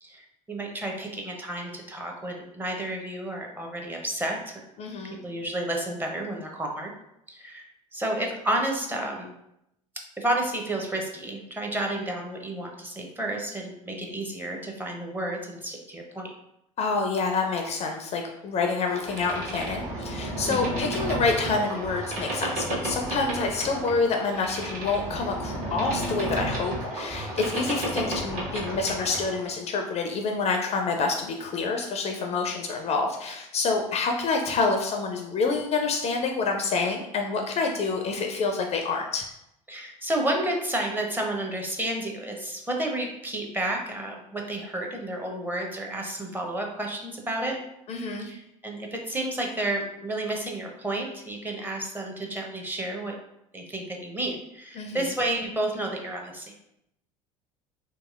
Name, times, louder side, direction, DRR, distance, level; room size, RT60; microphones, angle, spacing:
voice 1, 0.0-4.6 5.2-6.9 7.3-7.6 7.9-9.3 10.2-16.3 20.4-20.7 39.7-47.6 48.2-53.2 53.5-56.5, right 1 dB, 10° right, 1 dB, 0.6 m, -31 dB
voice 2, 4.8-5.2 16.8-39.2 47.9-48.3 54.8-55.1, left 4 dB, 35° left, 3 dB, 0.4 m, -27 dB
Boat Water vehicle, 18.9-29.4, right 1 dB, 55° right, 1.0 m, -32 dB
2.8 x 2.7 x 2.4 m, 0.82 s
figure-of-eight pair, 65°, 18 cm